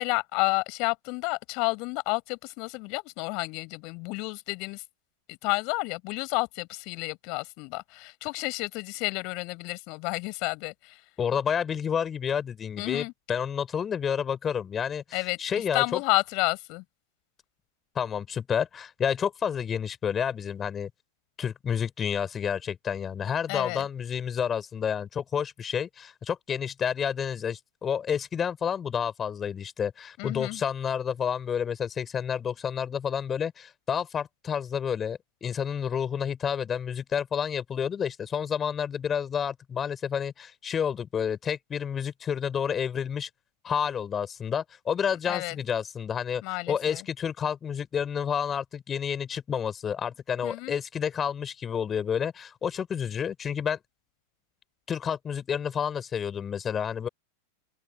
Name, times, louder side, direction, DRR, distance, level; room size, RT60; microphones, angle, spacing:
voice 1, 0.0-4.8 5.3-11.0 12.8-13.1 15.1-15.4 15.7-16.8 23.5-23.9 30.2-30.6 45.2-45.6 46.4-47.0 50.4-50.8, left 29 dB, 45° left, 6.4 m, -30 dB
voice 2, 11.2-16.0 17.9-20.9 21.4-43.3 43.6-46.4 46.7-53.8 54.9-57.1, left 7 dB, 20° left, 6.3 m, -30 dB
open air
figure-of-eight pair, 90°, 0 cm